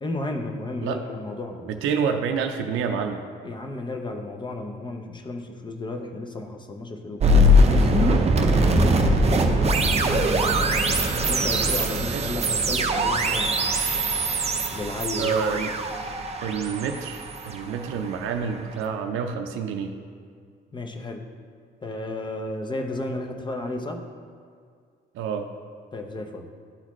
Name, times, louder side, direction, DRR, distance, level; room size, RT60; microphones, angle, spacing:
voice 1, 0.0-1.7 3.4-8.2 8.6-10.5 11.3-13.5 14.7-15.4 20.7-21.2 21.8-24.0 25.9-26.5, left 2 dB, 25° left, 4 dB, 0.7 m, -33 dB
voice 2, 1.6-3.2 12.0-12.3 15.2-15.7 16.4-19.9 25.1-25.5, right 6 dB, 85° right, 5 dB, 0.5 m, -28 dB
sound 1, 7.2-18.2, equal, 30° right, 0.6 m, -21 dB
11.5 x 4.0 x 3.1 m, 2.1 s
cardioid pair, 90°, 20 cm